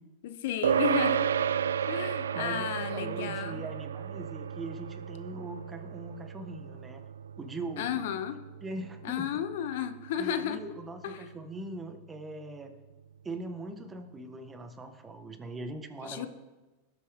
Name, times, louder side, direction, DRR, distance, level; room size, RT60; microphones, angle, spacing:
voice 1, 0.2-1.4 1.9-3.6 7.8-8.4 9.0-10.6 11.0-11.3 16.0-16.3, left 10 dB, 65° left, 10 dB, 0.9 m, -33 dB
sound 1, 0.6-10.3, right 8 dB, 85° right, 0.4 m, -33 dB
voice 2, 2.3-7.0 7.4-8.0 8.6-9.2 10.2-12.7 13.2-16.3, right 2 dB, 20° right, 7 dB, 1.5 m, -41 dB
19.0 x 8.2 x 3.7 m, 1.2 s
hypercardioid pair, 100°, 0 cm